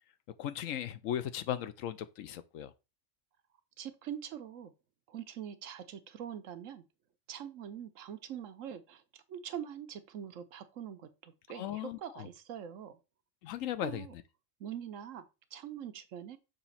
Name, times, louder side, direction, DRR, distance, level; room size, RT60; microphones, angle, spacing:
voice 1, 0.4-2.7 11.6-12.3 13.4-14.0, left 11 dB, 85° left, 1.0 m, -37 dB
voice 2, 3.8-4.7 5.1-6.8 7.3-13.0 13.8-14.1 14.6-15.3 15.5-16.4, right 9 dB, 80° right, 1.1 m, -43 dB
6.7 x 3.0 x 5.6 m
omnidirectional pair, 1.3 m